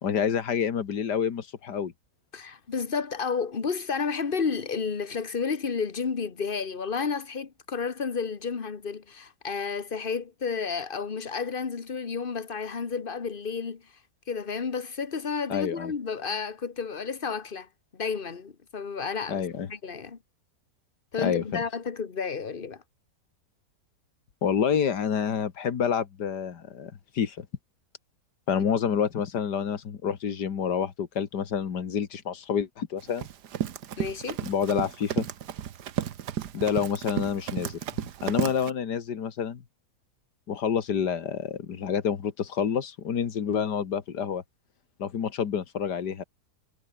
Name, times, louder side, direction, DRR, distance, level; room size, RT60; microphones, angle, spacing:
voice 1, 0.0-1.9 15.5-15.9 19.3-19.7 21.2-21.4 24.4-27.5 28.5-33.3 34.4-35.3 36.5-37.8 38.2-39.6 40.5-44.4 45.0-46.2, left 7 dB, 90° left, 2.2 m, -28 dB
voice 2, 2.3-13.8 14.3-19.4 19.7-20.2 21.1-22.8 34.0-34.4, left 5 dB, 35° left, 1.5 m, -31 dB
Run, 33.0-38.7, right 10 dB, 85° right, 1.6 m, -33 dB
omnidirectional pair, 1.7 m